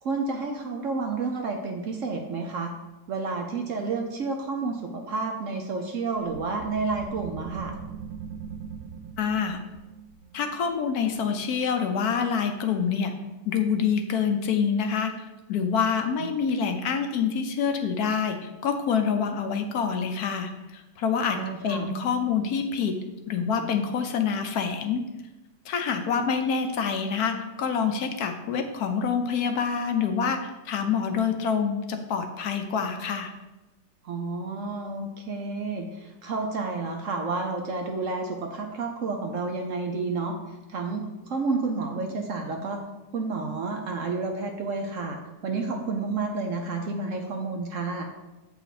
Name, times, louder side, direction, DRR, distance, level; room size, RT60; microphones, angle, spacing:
voice 1, 0.0-2.7 3.1-7.8 21.3-21.9 34.0-40.4 40.7-42.8 43.1-48.1, right 3 dB, 60° right, 3 dB, 0.9 m, -30 dB
sound 1, 6.3-11.5, right 7 dB, 75° right, 0.7 m, -41 dB
voice 2, 9.2-9.6 10.3-13.1 13.4-15.1 15.5-21.4 21.6-23.0 23.3-25.0 25.6-33.3, left 6 dB, 70° left, 6 dB, 1.1 m, -26 dB
7.8 x 5.6 x 4.1 m, 1.0 s
omnidirectional pair, 1.9 m